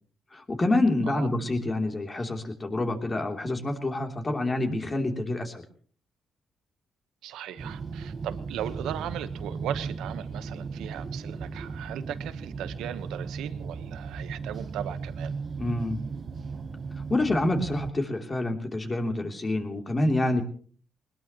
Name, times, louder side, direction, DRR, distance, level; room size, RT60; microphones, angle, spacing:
voice 1, 0.3-5.6 15.6-16.0 17.1-20.4, left 2 dB, 25° left, 4 dB, 3.1 m, -27 dB
voice 2, 7.2-15.3, right 11 dB, 85° right, 11 dB, 1.2 m, -37 dB
sound 1, 7.6-17.9, right 5 dB, 45° right, 1.3 m, -36 dB
21.5 x 20.5 x 3.1 m, 0.43 s
cardioid pair, 90°, 0 cm